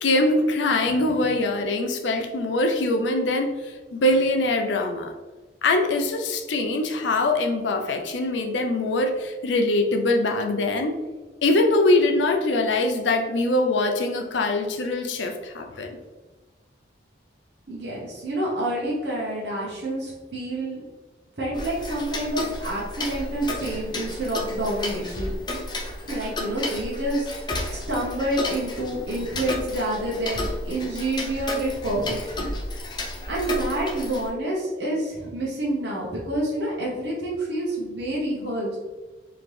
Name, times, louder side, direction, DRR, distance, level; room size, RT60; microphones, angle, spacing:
voice 1, 0.0-5.1 5.6-11.0 11.4-16.0, left 2 dB, 80° left, 4 dB, 0.5 m, -23 dB
voice 2, 17.7-20.8 21.4-25.3 26.1-27.3 27.7-32.5 33.3-38.8, right 1 dB, 70° right, -6 dB, 1.0 m, -28 dB
Tick-tock, 21.5-34.3, left 1 dB, 25° left, 0.4 m, -32 dB
4.0 x 2.9 x 3.3 m, 1.2 s
head